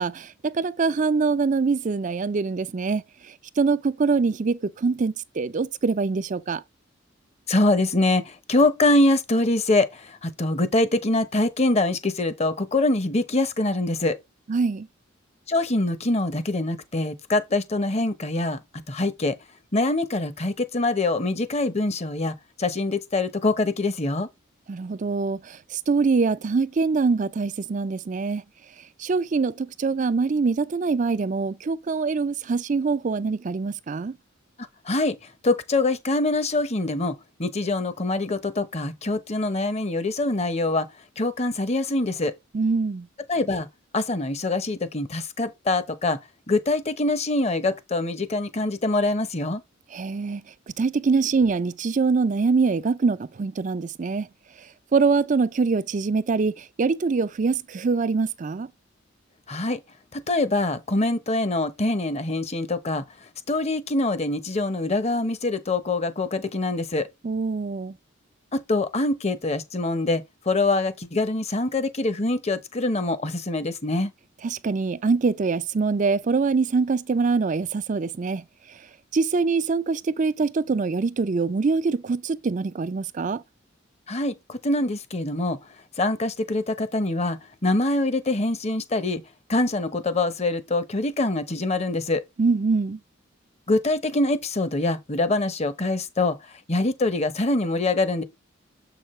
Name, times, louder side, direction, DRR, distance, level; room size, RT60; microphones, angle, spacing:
voice 1, 0.0-3.0 3.6-6.6 14.5-14.9 24.7-28.4 29.0-34.2 42.5-43.1 49.9-50.4 50.8-54.3 54.9-58.7 67.2-67.9 74.4-78.4 79.1-83.4 92.4-93.0, right 4 dB, 40° right, 0.4 m, -24 dB
voice 2, 7.5-14.2 15.5-18.6 18.9-19.4 19.7-24.3 34.9-35.2 35.4-40.9 41.2-42.3 43.3-43.7 43.9-46.2 46.5-49.6 59.5-59.8 60.1-63.0 63.5-67.1 68.5-74.1 84.1-85.6 86.0-89.2 89.5-92.2 93.7-96.4 96.7-98.2, left 2 dB, 35° left, 0.8 m, -24 dB
7.3 x 5.8 x 3.1 m
head